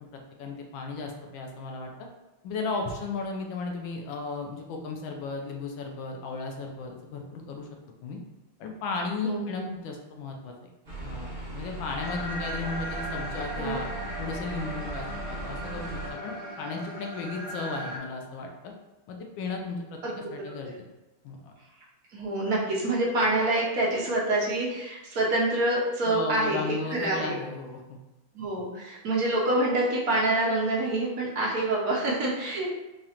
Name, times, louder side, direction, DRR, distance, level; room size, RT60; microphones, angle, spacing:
voice 1, 0.4-1.9 2.4-7.7 8.0-8.2 8.6-10.5 11.0-13.9 14.2-18.7 19.1-20.0 20.3-20.7 21.2-21.5 26.0-28.0, left 3 dB, 75° left, 2 dB, 1.3 m, -35 dB
voice 2, 9.2-9.7 13.6-13.8 20.0-20.2 20.5-20.6 22.1-26.6 26.9-27.4 28.3-32.7, right 2 dB, 60° right, -4 dB, 1.0 m, -26 dB
sound 1, 10.9-16.1, right 2 dB, 35° right, 0.9 m, -38 dB
sound 2, 12.0-18.0, equal, 45° left, 1.2 m, -38 dB
5.0 x 2.4 x 2.8 m, 1.0 s
omnidirectional pair, 2.3 m